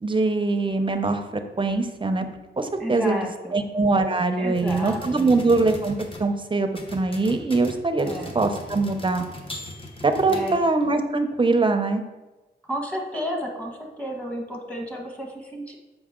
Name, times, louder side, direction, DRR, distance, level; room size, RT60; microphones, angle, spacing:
voice 1, 0.0-1.2 1.6-2.2 2.6-3.3 3.5-9.2 10.0-12.0, right 3 dB, 25° right, 7 dB, 0.6 m, -22 dB
voice 2, 2.8-3.6 4.4-5.3 8.0-8.3 10.3-10.6 12.6-15.8, equal, 5° left, 0 dB, 1.4 m, -32 dB
sound 1, 4.5-6.3 6.7-10.8, left 1 dB, 30° left, 1.0 m, -39 dB
7.1 x 5.1 x 3.7 m, 1.1 s
wide cardioid pair, 110°, 19 cm